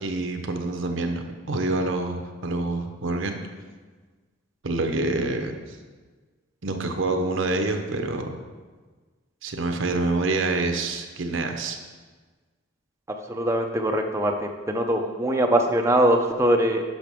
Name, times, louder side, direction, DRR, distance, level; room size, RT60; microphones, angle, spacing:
voice 1, 0.0-3.4 4.6-5.6 6.6-8.4 9.4-11.8, right 2 dB, 65° right, 5 dB, 0.8 m, -27 dB
voice 2, 13.3-16.8, right 1 dB, 15° right, 3 dB, 0.5 m, -22 dB
10.5 x 5.8 x 3.6 m, 1.4 s
head